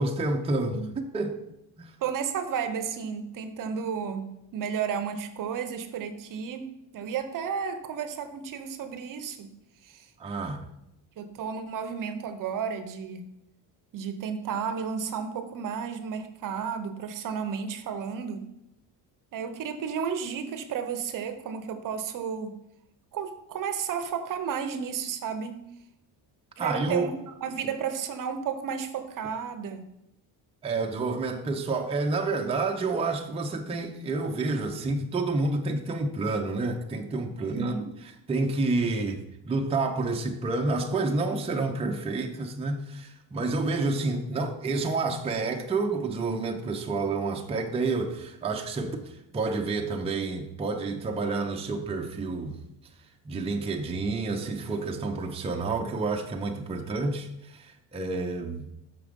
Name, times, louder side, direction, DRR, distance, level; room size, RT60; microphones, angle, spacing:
voice 1, 0.0-1.4 1.8-1.9 10.2-10.6 26.6-27.1 30.6-37.7 38.3-52.5 53.3-58.7, right 3 dB, 15° right, 0.6 m, -29 dB
voice 2, 2.0-9.5 9.8-10.1 11.2-13.3 13.9-18.5 19.3-22.5 23.1-25.6 26.6-29.9 37.4-37.9, right 7 dB, 50° right, 0.7 m, -33 dB
6.4 x 6.0 x 5.1 m
cardioid pair, 145°, 42 cm